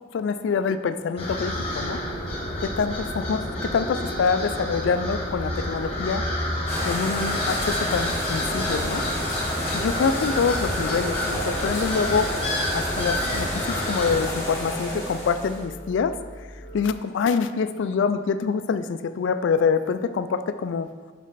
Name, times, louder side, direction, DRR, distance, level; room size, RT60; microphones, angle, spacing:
voice 1, 0.1-2.0 2.6-6.3 6.8-9.1 9.7-12.3 12.7-16.2 16.7-20.9, left 5 dB, 75° left, 11 dB, 0.3 m, -25 dB
sound 1, 1.2-14.2, left 1 dB, 30° left, 1.2 m, -29 dB
sound 2, 6.7-15.6, equal, 15° left, 1.1 m, -31 dB
sound 3, 9.6-16.9, right 1 dB, 50° left, 0.7 m, -42 dB
5.4 x 5.1 x 4.0 m, 1.5 s
head